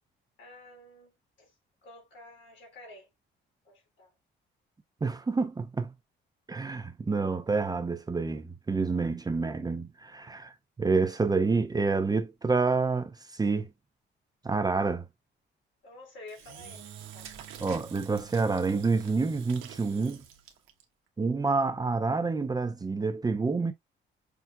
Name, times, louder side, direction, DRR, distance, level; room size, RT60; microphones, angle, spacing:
voice 1, 0.4-1.6 1.8-3.1 3.6-4.1 15.8-16.8 17.1-17.3, left 2 dB, 70° left, 2.6 m, -50 dB
voice 2, 5.0-5.9 6.5-10.5 10.8-13.7 14.4-15.1 17.6-20.2 21.2-23.7, right 4 dB, 20° right, 0.5 m, -28 dB
Engine / Drill, 16.3-20.8, right 9 dB, 90° right, 0.9 m, -46 dB
5.7 x 2.5 x 2.3 m
cardioid pair, 90°, 20 cm